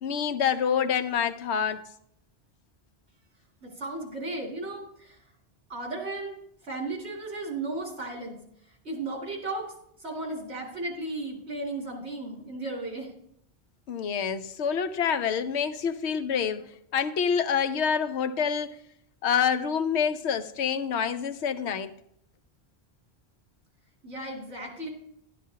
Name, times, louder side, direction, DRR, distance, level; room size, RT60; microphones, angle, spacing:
voice 1, 0.0-1.8 13.9-18.8 19.2-21.9, left 7 dB, 90° left, 0.9 m, -27 dB
voice 2, 3.6-5.2 5.7-6.3 6.6-8.4 8.8-9.7 10.0-13.1 24.0-24.9, right 2 dB, 85° right, 2.9 m, -35 dB
11.5 x 11.5 x 2.8 m
omnidirectional pair, 1.1 m